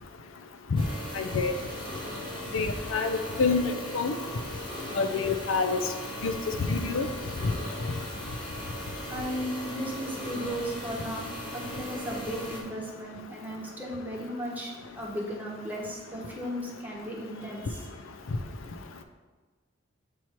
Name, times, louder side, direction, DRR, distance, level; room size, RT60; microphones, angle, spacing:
sound 1, 0.8-12.6, equal, 25° left, 1.1 m, -38 dB
voice 1, 1.1-1.5 2.5-4.1 4.9-5.8 6.2-6.3 6.7-7.1, left 4 dB, 80° left, 7 dB, 0.5 m, -27 dB
voice 2, 9.1-17.9, equal, 10° right, -3 dB, 1.0 m, -36 dB
7.0 x 3.1 x 4.4 m, 1.3 s
head